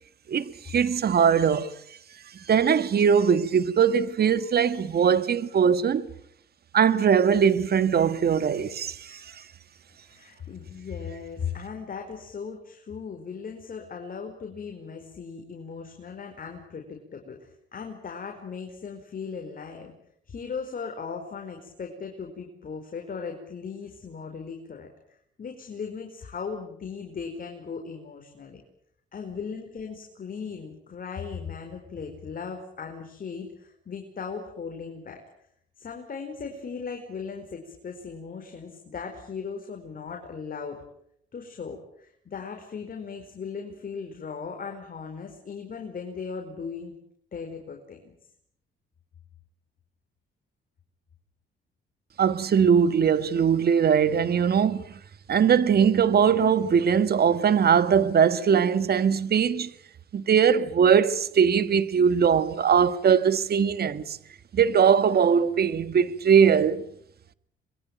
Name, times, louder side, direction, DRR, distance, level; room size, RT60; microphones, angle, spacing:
voice 1, 0.3-1.7 2.3-6.1 6.7-9.4 52.2-55.0 55.3-59.7 60.1-64.2 64.5-66.8, right 7 dB, 50° right, 1.7 m, -21 dB
voice 2, 10.0-19.9 20.3-24.9 25.4-28.6 29.1-35.2 35.8-40.8 41.3-46.9 47.3-48.1, left 5 dB, 45° left, 4.9 m, -37 dB
26.0 x 22.0 x 9.2 m
cardioid pair, 90°, 20 cm